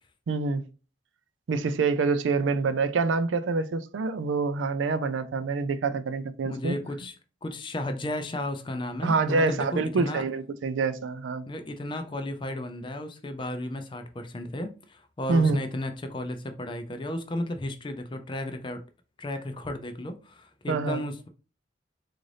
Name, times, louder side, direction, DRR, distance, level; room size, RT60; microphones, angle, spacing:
voice 1, 0.3-0.7 1.5-6.8 9.0-11.5 15.3-15.6 20.7-21.0, right 4 dB, 85° right, 0.4 m, -26 dB
voice 2, 6.4-7.1 7.4-10.2 11.5-18.8 19.2-21.3, left 1 dB, 25° left, 0.4 m, -34 dB
3.9 x 2.5 x 3.2 m
head